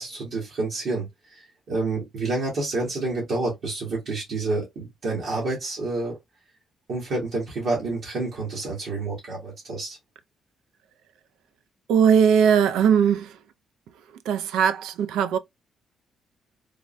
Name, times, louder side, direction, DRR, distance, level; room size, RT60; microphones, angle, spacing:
voice 1, 0.0-1.4 1.7-6.2 6.9-10.0, right 3 dB, 70° right, 1.3 m, -28 dB
voice 2, 11.9-13.3 14.3-15.4, right 7 dB, 85° right, 0.3 m, -19 dB
3.5 x 2.1 x 2.4 m
cardioid pair, 90°, 0 cm